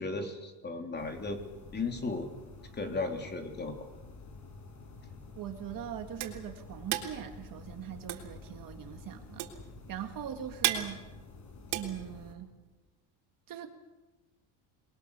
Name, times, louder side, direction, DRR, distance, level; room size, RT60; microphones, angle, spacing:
voice 1, 0.0-1.4 1.7-2.3 2.7-3.7, left 3 dB, 20° left, 4 dB, 3.4 m, -35 dB
sound 1, 1.0-12.3, left 4 dB, 35° left, 5.7 m, -50 dB
voice 2, 5.4-9.5 9.9-11.0 11.7-12.5 13.5-13.7, right 10 dB, 45° right, 6 dB, 2.2 m, -41 dB
sound 2, 5.6-12.7, right 13 dB, 70° right, 3.8 m, -36 dB
28.5 x 21.5 x 6.9 m, 1.1 s
cardioid pair, 140°, 48 cm